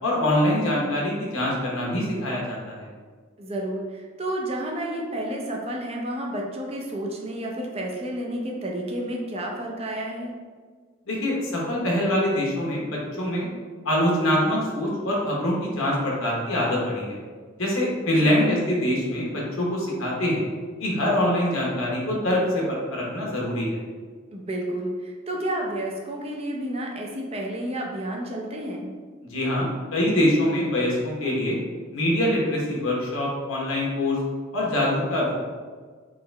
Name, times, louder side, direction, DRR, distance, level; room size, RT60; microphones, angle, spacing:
voice 1, 0.0-2.9 11.1-13.5 13.8-17.2 17.6-20.4 20.8-23.8 29.3-31.6 31.9-34.2 34.5-35.3, left 1 dB, 90° left, -3 dB, 1.1 m, -24 dB
voice 2, 3.4-10.3 18.2-18.6 24.3-28.9, right 1 dB, 30° right, 0 dB, 0.5 m, -31 dB
3.8 x 3.0 x 3.3 m, 1.6 s
head